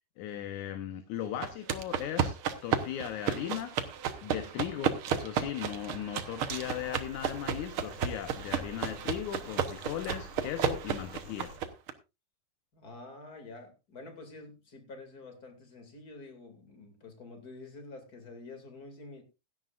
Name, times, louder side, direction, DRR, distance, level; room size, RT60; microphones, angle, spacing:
voice 1, 0.2-2.4 2.6-3.8 4.2-11.5, left 11 dB, 70° left, 2.2 m, -37 dB
sound 1, 1.4-11.9, right 8 dB, 85° right, 1.2 m, -33 dB
sound 2, 6.5-11.6, left 5 dB, 50° left, 2.6 m, -51 dB
voice 2, 12.7-19.2, left 3 dB, 30° left, 2.6 m, -48 dB
16.5 x 11.5 x 2.5 m
omnidirectional pair, 4.0 m